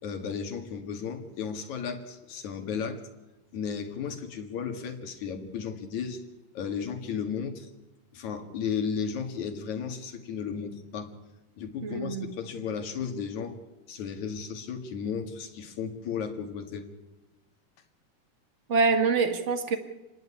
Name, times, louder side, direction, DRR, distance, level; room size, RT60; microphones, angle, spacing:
voice 1, 0.0-3.0 3.5-6.2 6.5-7.7 8.1-11.1 11.6-13.6 13.9-16.9, left 6 dB, 60° left, 5 dB, 3.2 m, -34 dB
voice 2, 11.8-12.3 18.7-19.8, right 4 dB, 35° right, 7 dB, 1.2 m, -25 dB
29.0 x 10.5 x 9.7 m, 1.1 s
omnidirectional pair, 3.9 m